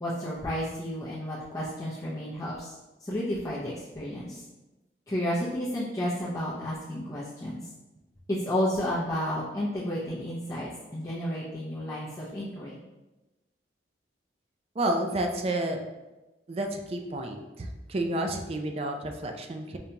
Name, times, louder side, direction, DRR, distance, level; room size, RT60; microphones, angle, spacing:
voice 1, 0.0-2.7 3.0-4.4 5.1-7.6 8.3-12.8, equal, 20° left, -9 dB, 0.6 m, -32 dB
voice 2, 14.8-15.8 16.5-19.8, right 1 dB, 35° right, 4 dB, 0.4 m, -30 dB
5.1 x 2.3 x 2.8 m, 1.1 s
head